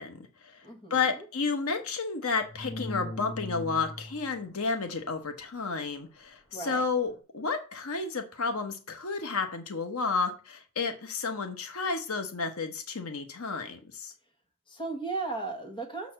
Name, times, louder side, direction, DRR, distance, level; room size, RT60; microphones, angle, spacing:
voice 1, 0.0-0.6 0.9-14.1, left 4 dB, 90° left, 7 dB, 1.1 m, -31 dB
voice 2, 0.6-1.2 6.5-6.8 14.7-16.1, right 3 dB, 25° left, 2 dB, 1.5 m, -36 dB
sound 1, 2.4-4.4 7.0-7.2, left 1 dB, 65° left, 1.8 m, -39 dB
6.9 x 4.2 x 6.4 m, 0.35 s
head